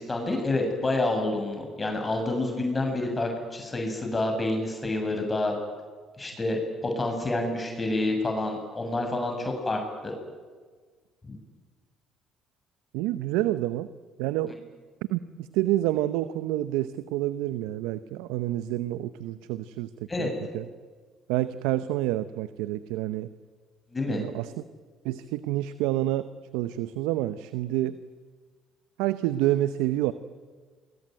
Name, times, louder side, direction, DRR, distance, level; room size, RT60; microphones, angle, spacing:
voice 1, 0.0-5.5 6.2-10.1 11.3-11.4 20.1-20.3 23.9-24.2, left 2 dB, 25° left, 3 dB, 7.2 m, -28 dB
voice 2, 12.9-13.9 14.2-14.6 15.1-19.9 20.2-20.7 21.3-23.3 24.1-24.5 25.0-28.0 29.0-30.1, right 14 dB, 80° right, 13 dB, 0.8 m, -28 dB
29.0 x 22.0 x 9.3 m, 1.5 s
hypercardioid pair, 60°, 0 cm